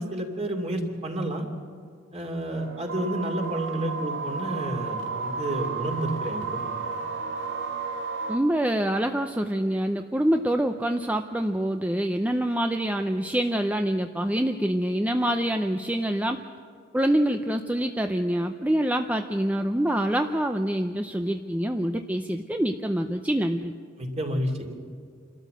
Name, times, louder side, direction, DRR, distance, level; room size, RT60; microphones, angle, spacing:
voice 1, 0.0-1.5 2.1-6.7 24.0-24.7, right 1 dB, 35° right, 3 dB, 2.7 m, -30 dB
sound 1, 2.5-8.4, right 4 dB, 80° right, 1.9 m, -32 dB
voice 2, 8.3-16.4 16.9-23.7, right 1 dB, 10° right, 5 dB, 0.6 m, -26 dB
27.5 x 13.0 x 7.8 m, 2.3 s
head